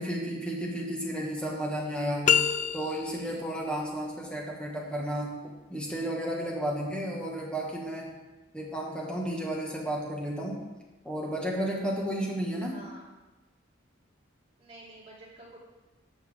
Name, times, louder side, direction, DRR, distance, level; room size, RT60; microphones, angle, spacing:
voice 1, 0.0-8.1 8.5-10.6 11.0-12.8, right 1 dB, 5° left, -2 dB, 1.6 m, -33 dB
sound 1, 2.2-3.4, left 7 dB, 35° left, 0.3 m, -25 dB
voice 2, 12.6-13.1 14.6-15.6, right 1 dB, 30° right, -6 dB, 3.1 m, -49 dB
13.0 x 7.2 x 3.6 m, 1.1 s
head